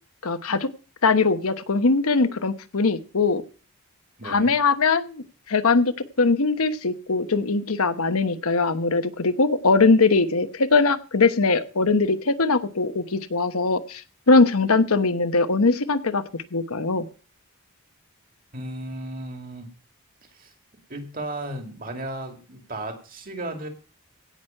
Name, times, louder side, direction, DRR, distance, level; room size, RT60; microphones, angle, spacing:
voice 1, 0.2-0.7 1.0-3.4 4.2-14.0 14.3-16.2 16.5-17.1, left 3 dB, 80° left, 10 dB, 1.0 m, -21 dB
voice 2, 4.2-4.6 18.5-19.7 20.3-20.5 20.9-23.7, right 1 dB, 40° right, 5 dB, 2.3 m, -35 dB
16.5 x 6.2 x 5.6 m, 0.37 s
head